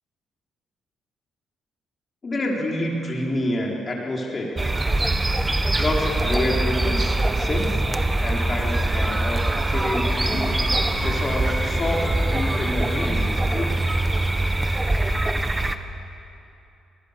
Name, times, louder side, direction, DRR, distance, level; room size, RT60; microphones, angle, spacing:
voice 1, 2.2-4.6 5.8-7.8 8.2-10.5 11.0-13.8, left 1 dB, 35° left, -1 dB, 4.3 m, -28 dB
sound 1, 4.6-15.8, right 2 dB, 15° right, 1.1 m, -23 dB
sound 2, 10.1-14.6, left 4 dB, 90° left, 4.8 m, -39 dB
23.0 x 20.5 x 6.8 m, 2.8 s
cardioid pair, 90°, 0 cm